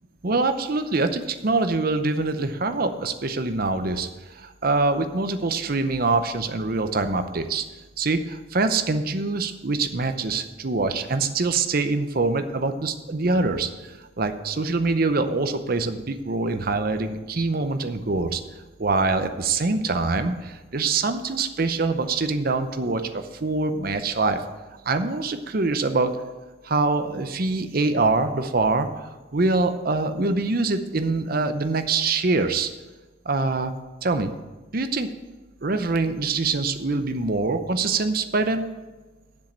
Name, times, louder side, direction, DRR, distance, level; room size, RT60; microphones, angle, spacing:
voice 1, 0.2-7.6 8.0-13.7 14.2-18.4 18.8-24.4 24.9-26.1 26.6-28.9 29.3-32.7 33.3-33.7 34.0-34.3 34.7-35.1 35.6-38.7, right 3 dB, 45° right, 8 dB, 0.7 m, -24 dB
7.6 x 7.4 x 7.3 m, 1.2 s
head